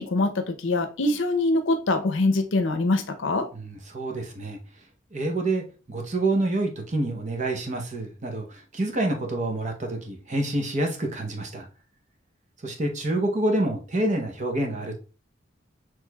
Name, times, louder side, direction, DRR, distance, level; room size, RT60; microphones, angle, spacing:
voice 1, 0.0-3.5, left 2 dB, 70° left, 7 dB, 0.6 m, -24 dB
voice 2, 3.5-4.6 5.1-11.7 12.6-15.0, right 2 dB, 35° right, 3 dB, 0.7 m, -27 dB
6.3 x 3.1 x 2.3 m, 0.36 s
head